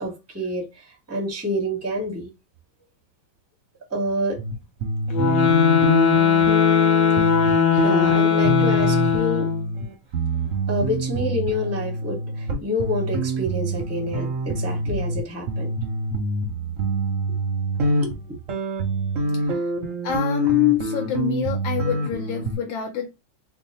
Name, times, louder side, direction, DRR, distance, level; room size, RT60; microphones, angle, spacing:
voice 1, 0.0-2.3 3.9-4.4 7.7-9.5 10.7-15.7 18.0-18.4, left 1 dB, 15° right, 0.4 m, -28 dB
sound 1, 4.4-4.5 4.8-15.2 15.5-22.5, right 2 dB, 60° right, 0.8 m, -26 dB
sound 2, 5.1-9.7, left 7 dB, 60° left, 1.3 m, -19 dB
voice 2, 20.0-23.1, left 12 dB, 80° left, 1.4 m, -25 dB
3.6 x 2.1 x 4.2 m
omnidirectional pair, 2.2 m